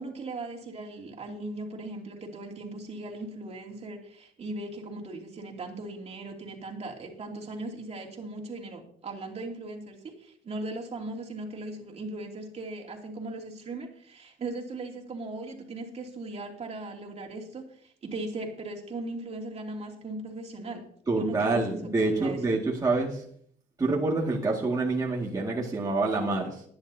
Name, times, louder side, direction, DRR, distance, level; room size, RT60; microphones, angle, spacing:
voice 1, 0.0-20.9 21.2-22.6, right 2 dB, 40° right, 0 dB, 2.8 m, -38 dB
voice 2, 21.1-23.2 23.8-26.6, right 3 dB, 20° right, -3 dB, 2.1 m, -27 dB
20.5 x 10.5 x 2.8 m, 0.63 s
cardioid pair, 110°, 17 cm